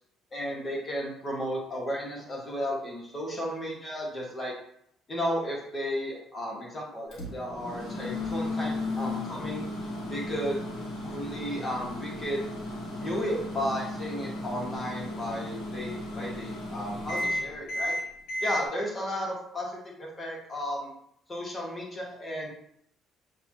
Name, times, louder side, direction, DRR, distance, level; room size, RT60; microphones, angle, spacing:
voice 1, 0.3-4.5 5.1-9.7 10.1-10.6 11.1-12.4 13.0-18.0 18.4-20.9 21.3-22.5, equal, 35° left, -3 dB, 1.7 m, -34 dB
Microwave oven, 7.1-18.6, left 1 dB, 75° left, 1.2 m, -34 dB
6.7 x 2.7 x 2.9 m, 0.69 s
supercardioid pair, 75°, 0 cm